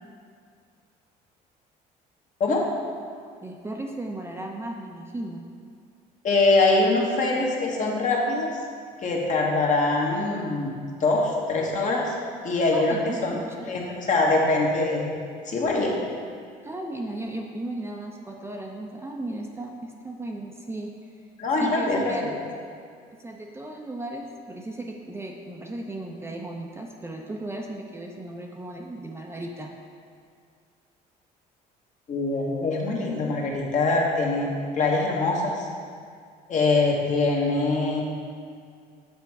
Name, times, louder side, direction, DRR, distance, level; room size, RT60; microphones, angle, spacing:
voice 1, 3.4-5.4 12.7-13.8 16.6-20.9 21.6-22.2 23.1-29.7, right 1 dB, 15° right, 0 dB, 0.5 m, -36 dB
voice 2, 6.2-8.5 9.0-12.1 12.4-13.4 13.6-15.1 15.4-15.9 21.4-22.3 32.1-34.5 34.7-35.7 36.5-38.0, left 3 dB, 50° left, -2 dB, 1.2 m, -23 dB
6.9 x 4.3 x 4.7 m, 2.2 s
cardioid pair, 110°, 17 cm